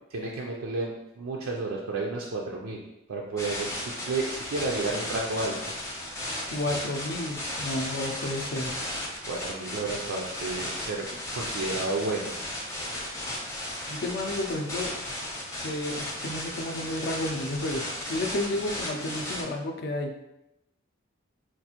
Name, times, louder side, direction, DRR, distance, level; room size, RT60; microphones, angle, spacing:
voice 1, 0.1-2.8 3.1-5.6 9.2-11.1 11.3-12.4, right 3 dB, 85° right, -2 dB, 0.4 m, -31 dB
sound 1, 3.4-19.4, left 1 dB, 15° left, 0.7 m, -35 dB
voice 2, 6.5-8.7 13.9-14.9 15.6-17.8 18.1-20.1, left 1 dB, 55° left, 4 dB, 0.4 m, -31 dB
4.4 x 2.4 x 2.9 m, 0.91 s
head